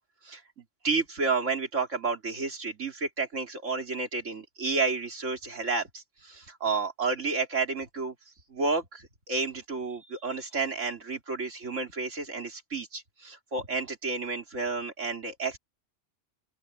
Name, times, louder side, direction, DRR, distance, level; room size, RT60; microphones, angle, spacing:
voice 1, 0.8-8.1 8.5-15.6, right 4 dB, 80° right, 3.4 m, -31 dB
open air
omnidirectional pair, 1.3 m